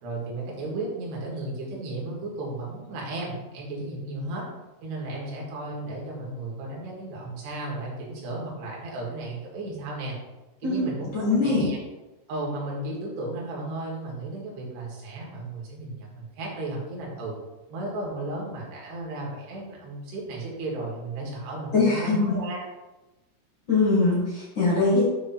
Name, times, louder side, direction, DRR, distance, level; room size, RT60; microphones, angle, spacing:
voice 1, 0.0-4.4 4.8-10.2 10.6-11.8 12.3-17.3 17.7-22.6, right 2 dB, 65° right, -3 dB, 3.4 m, -34 dB
voice 2, 10.6-11.7 21.7-22.4 23.7-25.0, left 3 dB, 65° left, -7 dB, 1.1 m, -22 dB
9.0 x 3.2 x 5.8 m, 1.1 s
omnidirectional pair, 5.8 m